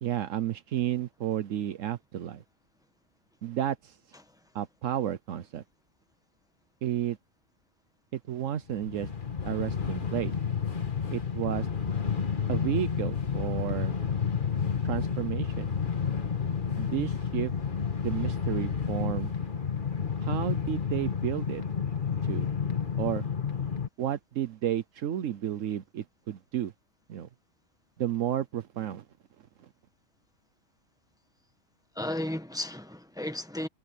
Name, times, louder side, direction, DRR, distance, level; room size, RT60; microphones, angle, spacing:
voice 1, 0.0-2.4 3.4-4.0 4.5-5.6 6.8-7.2 8.1-9.1 9.4-10.3 11.1-11.7 12.5-13.9 14.8-15.7 16.8-17.5 18.0-19.3 20.2-21.6 22.2-22.5 23.0-23.3 24.0-26.7 27.1-27.3 28.0-29.0 29.6-29.7, right 11 dB, 75° right, 1.1 m, -32 dB
Train, 8.7-23.9, left 6 dB, 40° left, 1.6 m, -30 dB
voice 2, 31.9-33.7, left 1 dB, 5° right, 1.3 m, -34 dB
omnidirectional pair, 1.4 m